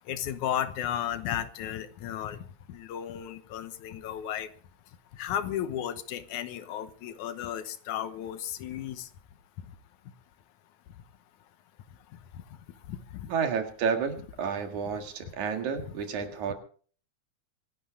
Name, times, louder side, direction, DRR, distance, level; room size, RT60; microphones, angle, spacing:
voice 1, 0.1-2.4 2.7-4.5 5.2-9.1 12.9-13.3 16.2-16.3, left 10 dB, 80° left, 12 dB, 2.5 m, -34 dB
voice 2, 13.3-16.5, right 6 dB, 75° right, 6 dB, 3.2 m, -30 dB
25.0 x 11.5 x 3.8 m, 0.43 s
omnidirectional pair, 3.5 m